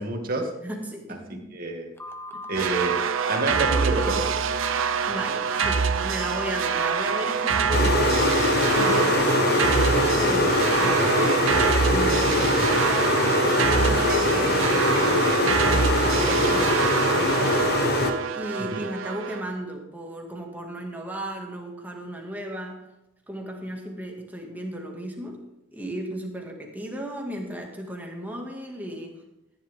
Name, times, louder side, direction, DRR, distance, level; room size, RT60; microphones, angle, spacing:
voice 1, 0.0-0.5 1.1-1.2 1.5-1.9 2.5-3.0 3.3-4.4 18.7-18.8, right 3 dB, 45° right, 1 dB, 2.3 m, -28 dB
voice 2, 0.6-1.6 2.3-2.5 4.8-8.4 8.7-9.9 10.2-17.7 18.3-22.8 23.3-25.5 25.7-29.2, right 1 dB, 10° right, 0 dB, 2.1 m, -35 dB
Telephone, 2.0-4.9 5.5-5.8 6.2-6.5, left 1 dB, 10° left, 0.9 m, -38 dB
sound 1, 2.5-19.4, right 6 dB, 85° right, 0.7 m, -25 dB
sound 2, 7.7-18.1, left 2 dB, 55° left, 1.3 m, -22 dB
14.5 x 10.5 x 3.7 m, 0.93 s
head